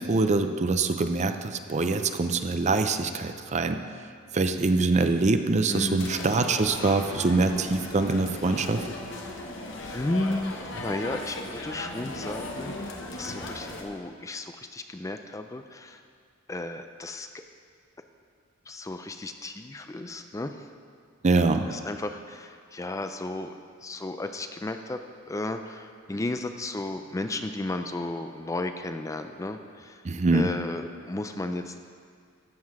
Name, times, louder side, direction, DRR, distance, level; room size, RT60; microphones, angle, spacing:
voice 1, 0.0-3.8 4.3-8.8 21.2-21.7 30.0-30.5, right 3 dB, 35° right, 8 dB, 0.5 m, -24 dB
voice 2, 5.7-6.1 9.3-16.0 16.5-17.3 18.7-20.7 21.7-23.5 23.8-25.0 25.3-30.0 30.3-31.8, left 2 dB, 15° left, 7 dB, 0.4 m, -34 dB
sound 1, 6.0-13.8, left 2 dB, 65° left, 1.2 m, -37 dB
13.5 x 7.7 x 4.8 m, 2.1 s
head